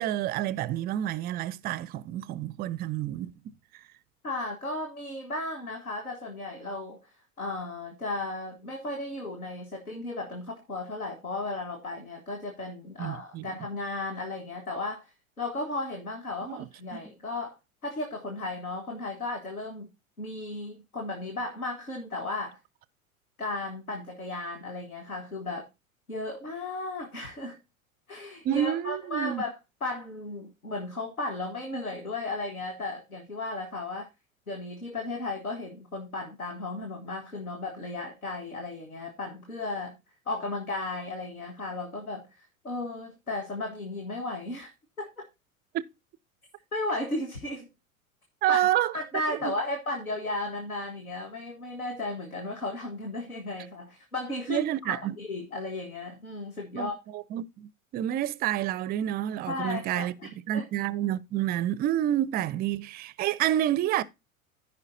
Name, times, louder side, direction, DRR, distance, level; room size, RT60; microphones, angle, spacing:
voice 1, 0.0-3.3 13.0-13.5 16.4-16.6 16.9-17.0 28.4-29.4 45.7-45.8 48.4-48.9 49.4-49.5 54.5-55.2 56.7-60.1 60.5-64.0, right 12 dB, 25° right, 0.4 m, -29 dB
voice 2, 4.2-7.1 7.4-15.1 15.4-17.6 17.8-19.9 20.2-22.6 23.4-25.7 26.1-27.6 28.1-34.1 34.5-39.9 40.3-44.7 45.0-45.3 46.7-47.7 48.5-48.6 48.9-57.0 59.5-60.6, left 2 dB, 85° left, 1.6 m, -35 dB
14.5 x 5.4 x 2.6 m
figure-of-eight pair, 85°, 42 cm